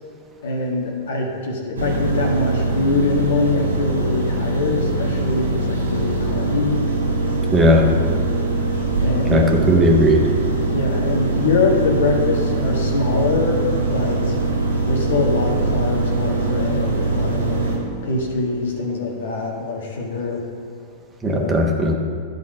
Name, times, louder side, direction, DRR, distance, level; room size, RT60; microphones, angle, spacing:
voice 1, 0.4-6.8 8.0-8.2 9.0-9.5 10.7-14.4 14.8-17.6 18.0-20.4 21.3-21.6, left 3 dB, 70° left, 0 dB, 1.5 m, -23 dB
sound 1, 1.8-17.8, right 2 dB, 85° right, 2.0 m, -22 dB
voice 2, 7.5-7.9 9.3-10.2 21.2-21.9, left 1 dB, 20° right, 1 dB, 1.1 m, -16 dB
10.5 x 4.0 x 6.6 m, 2.2 s
figure-of-eight pair, 100°, 0 cm